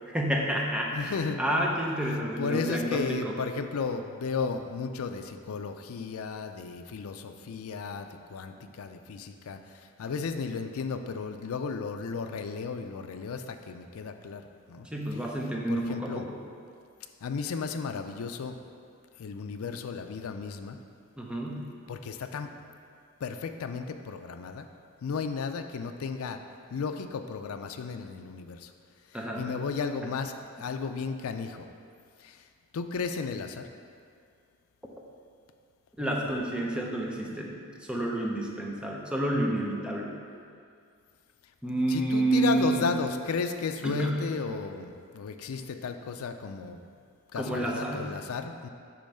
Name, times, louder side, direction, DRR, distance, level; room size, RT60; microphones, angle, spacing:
voice 1, 0.1-3.4 14.8-16.4 21.2-21.7 29.1-29.5 36.0-37.6 37.9-40.1 41.6-42.9 43.8-44.3 47.4-48.2, right 1 dB, 5° right, -2 dB, 0.6 m, -29 dB
voice 2, 0.9-1.4 2.4-9.6 10.0-14.9 15.7-16.3 17.2-18.6 19.2-20.8 21.9-22.5 23.2-24.7 25.0-26.4 26.7-28.7 29.4-31.7 32.2-32.4 32.7-33.7 41.9-46.8 47.3-48.7, left 5 dB, 75° left, 7 dB, 0.4 m, -34 dB
6.9 x 3.1 x 5.4 m, 2.2 s
head